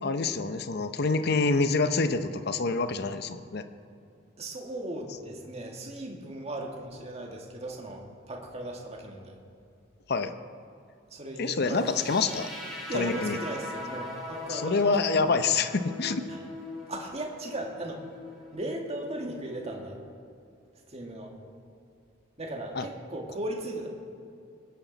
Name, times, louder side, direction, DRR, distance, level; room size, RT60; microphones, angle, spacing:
voice 1, 0.0-3.6 10.1-10.3 11.4-12.5 12.9-13.4 14.5-16.3 22.8-22.9, left 4 dB, 60° left, 10 dB, 0.7 m, -26 dB
voice 2, 4.4-9.4 11.1-11.9 12.9-14.8 15.1-15.3 16.3-16.4 16.9-18.0 18.5-20.0 20.9-21.3 22.4-23.9, right 1 dB, 35° right, 0 dB, 1.9 m, -37 dB
sound 1, 11.7-19.7, left 2 dB, ahead, 4.1 m, -41 dB
21.0 x 10.5 x 4.0 m, 2.6 s
head